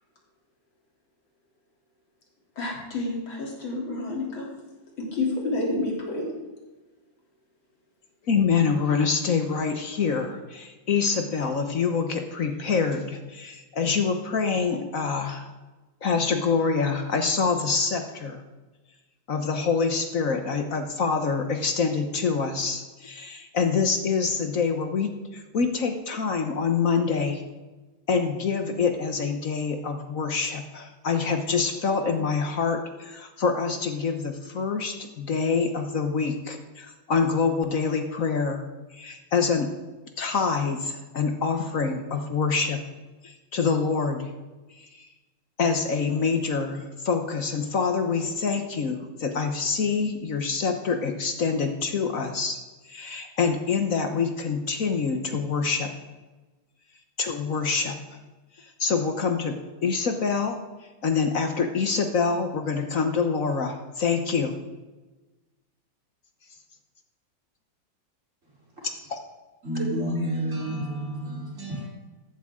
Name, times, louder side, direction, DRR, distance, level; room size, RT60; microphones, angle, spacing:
voice 1, 2.6-4.5 5.0-6.3, left 2 dB, 85° left, -3 dB, 3.9 m, -29 dB
voice 2, 8.3-15.5 16.0-18.4 19.3-27.4 28.1-38.6 38.9-39.7 40.2-42.8 43.2-44.3 44.7-45.1 45.6-52.6 52.8-55.9 57.2-58.0 58.6-60.6 61.0-64.5 69.1-69.2, left 5 dB, 50° left, 6 dB, 1.2 m, -26 dB
voice 3, 69.6-71.9, right 1 dB, 40° right, -4 dB, 4.0 m, -29 dB
14.5 x 12.0 x 3.7 m, 1.2 s
omnidirectional pair, 2.1 m